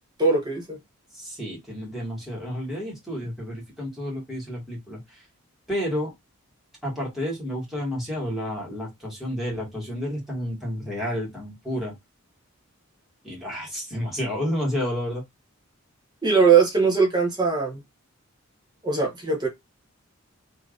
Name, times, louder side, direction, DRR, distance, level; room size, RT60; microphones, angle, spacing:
voice 1, 0.2-0.8 16.2-17.8 18.8-19.5, right 5 dB, 20° right, 0.9 m, -20 dB
voice 2, 1.1-5.2 5.7-6.1 6.8-11.9 13.2-15.2, equal, ahead, 1.7 m, -30 dB
3.4 x 2.8 x 2.4 m
head